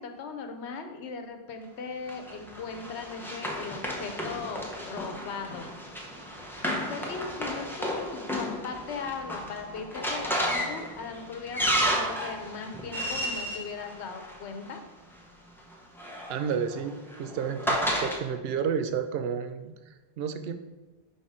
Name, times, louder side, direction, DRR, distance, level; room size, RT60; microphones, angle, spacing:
voice 1, 0.0-5.7 6.9-14.8, left 5 dB, 90° left, 5 dB, 1.0 m, -38 dB
Run, 2.1-14.7 15.7-18.2, equal, ahead, 0.7 m, -32 dB
voice 2, 16.3-20.5, right 7 dB, 70° right, 9 dB, 0.8 m, -31 dB
5.5 x 4.0 x 4.8 m, 1.2 s
omnidirectional pair, 1.1 m